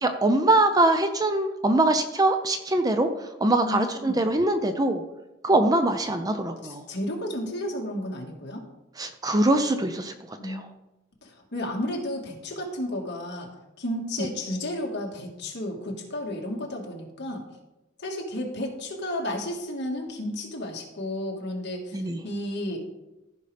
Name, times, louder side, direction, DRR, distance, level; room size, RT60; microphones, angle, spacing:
voice 1, 0.0-3.1 3.4-5.0 5.4-6.8 9.0-10.6 14.2-14.3 21.9-22.2, right 2 dB, 20° right, 7 dB, 0.5 m, -23 dB
voice 2, 3.6-4.2 6.6-8.6 10.4-10.6 11.2-13.5 13.8-17.4 18.0-22.8, left 1 dB, 55° left, 0 dB, 1.7 m, -32 dB
14.5 x 5.2 x 3.4 m, 0.96 s
head